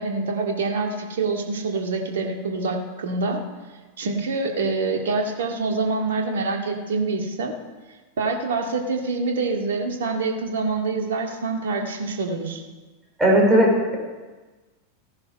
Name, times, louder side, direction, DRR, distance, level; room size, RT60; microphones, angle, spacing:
voice 1, 0.0-3.4 4.0-7.6 8.2-12.6, right 3 dB, 60° right, 2 dB, 2.0 m, -26 dB
voice 2, 13.2-14.0, right 1 dB, 10° right, -3 dB, 4.9 m, -17 dB
15.5 x 10.5 x 5.4 m, 1.3 s
figure-of-eight pair, 90°, 0 cm